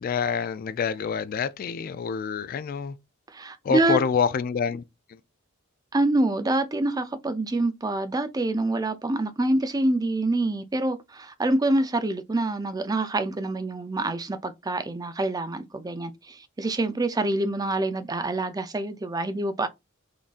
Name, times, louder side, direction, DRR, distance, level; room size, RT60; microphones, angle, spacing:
voice 1, 0.0-3.0 3.6-4.8 5.1-5.2, left 6 dB, 45° left, 0.3 m, -27 dB
voice 2, 3.3-4.0 5.9-19.7, right 2 dB, 20° right, 0.5 m, -26 dB
3.9 x 3.5 x 2.4 m
head